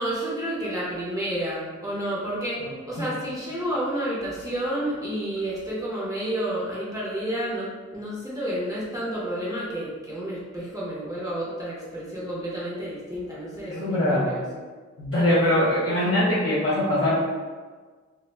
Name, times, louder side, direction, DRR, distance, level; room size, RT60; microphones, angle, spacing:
voice 1, 0.0-14.4, right 1 dB, 10° right, -8 dB, 0.7 m, -30 dB
voice 2, 13.7-14.3 15.0-17.2, left 1 dB, 50° left, -8 dB, 0.7 m, -22 dB
2.2 x 2.0 x 3.2 m, 1.4 s
cardioid pair, 50°, 30 cm